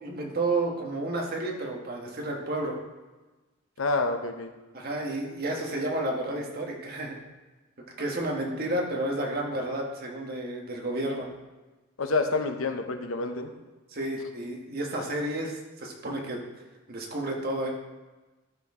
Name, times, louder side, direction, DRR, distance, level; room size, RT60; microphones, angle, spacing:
voice 1, 0.0-2.8 4.7-7.2 8.0-11.3 13.9-16.4 16.9-17.7, right 1 dB, 50° right, 0 dB, 1.4 m, -31 dB
voice 2, 3.8-4.5 12.0-13.5, left 3 dB, 75° left, 6 dB, 0.8 m, -28 dB
12.5 x 4.6 x 3.6 m, 1.2 s
head